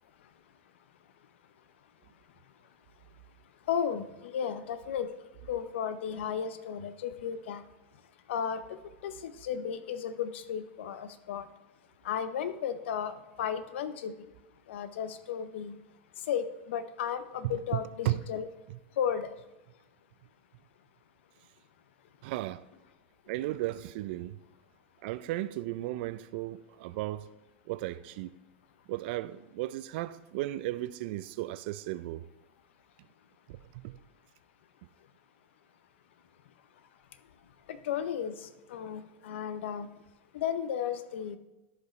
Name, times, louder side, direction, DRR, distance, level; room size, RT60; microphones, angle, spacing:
voice 1, 3.7-5.1 5.5-7.6 8.3-11.5 12.0-14.1 14.7-15.8 16.3-18.5 19.0-19.3 37.7-39.9 40.3-41.4, left 8 dB, 75° left, 0.7 m, -34 dB
voice 2, 17.4-18.2 18.7-18.8 22.2-22.7 23.3-24.4 25.0-27.3 27.7-28.3 28.9-32.2 33.5-34.0, right 16 dB, 60° right, 0.4 m, -35 dB
13.5 x 5.0 x 3.1 m
hypercardioid pair, 115°, 6 cm